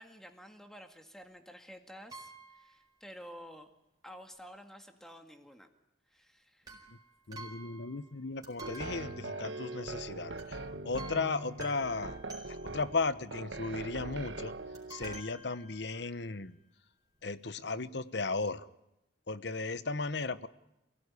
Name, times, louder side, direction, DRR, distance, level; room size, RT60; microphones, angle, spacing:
voice 1, 0.0-3.7 4.0-5.7 6.1-6.8, equal, ahead, 5 dB, 2.0 m, -51 dB
sound 1, 2.1-2.8 6.6-8.2 8.4-9.9 10.4-10.6 11.0-13.0 14.7-16.2 16.9-17.0 17.2-17.3, right 1 dB, 20° right, 4.7 m, -51 dB
voice 2, 7.3-12.2 12.5-14.5 14.9-16.6 17.2-18.7 19.3-20.5, left 3 dB, 60° left, 14 dB, 1.0 m, -36 dB
sound 2, 8.6-15.2, right 2 dB, 75° right, 1.3 m, -42 dB
28.0 x 17.0 x 9.9 m, 0.88 s
head